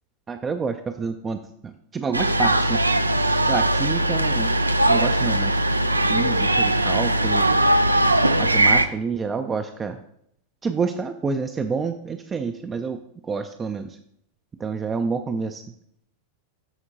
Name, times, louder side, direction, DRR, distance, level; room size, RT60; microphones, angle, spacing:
voice 1, 0.3-2.8 3.4-4.6 4.9-5.6 6.1-7.5 8.4-10.0 10.6-13.0 13.2-14.0 14.6-15.6, right 5 dB, 20° right, 7 dB, 0.4 m, -28 dB
sound 1, 2.1-8.9, right 1 dB, 85° right, 0.4 m, -20 dB
13.0 x 4.4 x 2.8 m, 0.72 s
figure-of-eight pair, 90°, 0 cm